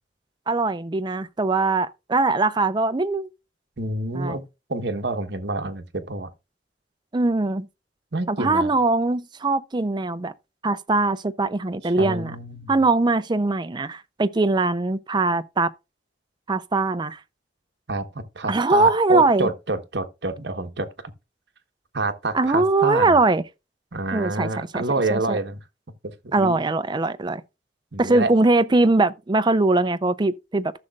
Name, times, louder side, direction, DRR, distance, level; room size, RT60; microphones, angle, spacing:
voice 1, 0.5-3.3 4.1-4.4 7.1-7.7 8.3-10.3 10.6-12.3 12.7-15.7 16.5-17.2 18.5-19.5 22.3-23.4 24.1-24.5 24.7-24.8 25.1-25.4 26.3-27.4 28.0-30.8, right 3 dB, 25° right, 0.5 m, -21 dB
voice 2, 3.8-4.4 4.7-6.3 8.1-8.7 11.8-12.7 17.9-20.9 21.9-23.2 23.9-25.6 26.2-26.6 27.9-28.3, right 2 dB, 65° right, 1.2 m, -27 dB
14.5 x 6.5 x 2.4 m
head